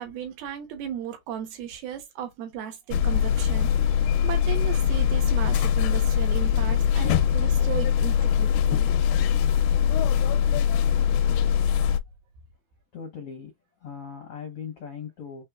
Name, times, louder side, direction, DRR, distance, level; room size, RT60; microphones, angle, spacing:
voice 1, 0.0-3.7 4.0-8.9, right 10 dB, 75° right, 3.0 m, -35 dB
sound 1, 2.9-12.0, left 8 dB, 90° left, 2.6 m, -22 dB
voice 2, 12.9-13.5 13.8-15.4, left 6 dB, 70° left, 1.3 m, -39 dB
6.4 x 3.3 x 2.4 m
omnidirectional pair, 4.5 m